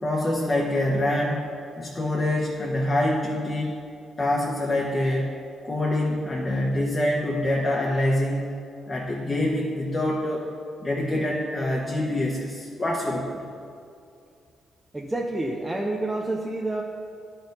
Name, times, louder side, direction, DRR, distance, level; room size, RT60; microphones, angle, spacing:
voice 1, 0.0-1.5 1.8-3.8 4.2-5.4 5.6-8.5 8.9-10.5 10.8-13.4, left 1 dB, 30° left, -2 dB, 1.0 m, -25 dB
voice 2, 14.9-16.8, right 2 dB, 15° right, -1 dB, 0.7 m, -28 dB
10.5 x 4.5 x 5.3 m, 2.5 s
cardioid pair, 85°, 0 cm